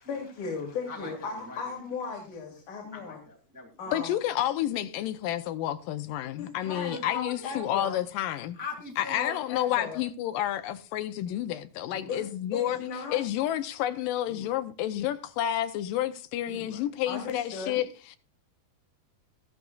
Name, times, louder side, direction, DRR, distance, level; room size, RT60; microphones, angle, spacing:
voice 1, 0.1-3.2 3.8-4.2 6.4-8.0 9.2-10.0 12.1-12.2 12.5-13.2 17.1-17.8, left 5 dB, 55° left, 3.9 m, -36 dB
voice 2, 0.9-1.6 2.9-3.9 6.7-7.5 8.5-9.4 11.9-12.2 12.7-12.9 14.3-14.6 16.5-16.9, left 4 dB, 5° right, 1.7 m, -42 dB
voice 3, 3.9-8.6 9.0-12.8 13.1-17.9, left 12 dB, 80° left, 2.2 m, -30 dB
14.5 x 13.0 x 2.4 m
omnidirectional pair, 4.3 m